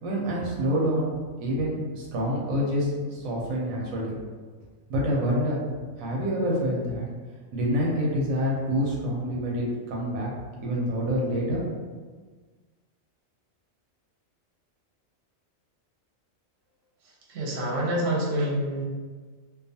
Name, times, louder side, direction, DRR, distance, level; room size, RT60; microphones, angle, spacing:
voice 1, 0.0-1.1 1.4-4.2 4.9-5.6 6.0-7.1 7.5-10.3 10.6-11.6, equal, 85° right, -3 dB, 1.0 m, -27 dB
voice 2, 17.3-18.8, right 1 dB, 60° right, -4 dB, 0.9 m, -27 dB
2.5 x 2.3 x 2.6 m, 1.4 s
omnidirectional pair, 1.4 m